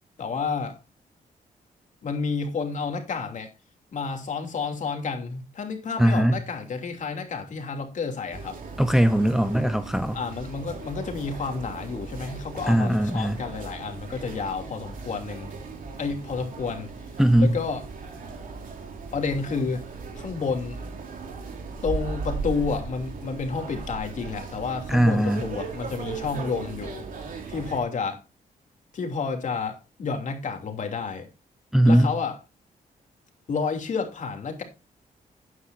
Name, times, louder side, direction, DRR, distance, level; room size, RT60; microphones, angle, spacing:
voice 1, 0.2-0.8 2.0-3.5 3.9-8.6 10.1-15.5 16.0-16.9 17.4-17.8 19.1-19.8 20.1-20.8 21.8-27.0 27.5-28.2 28.9-31.3 31.9-32.4 33.5-34.6, left 5 dB, 55° left, 2.8 m, -30 dB
voice 2, 6.0-6.4 8.8-10.2 12.7-13.4 17.2-17.6 24.9-25.5 31.7-32.1, right 1 dB, 5° right, 0.7 m, -20 dB
sound 1, 8.3-27.8, right 4 dB, 65° right, 3.3 m, -37 dB
13.0 x 9.6 x 2.6 m
cardioid pair, 125°, 15 cm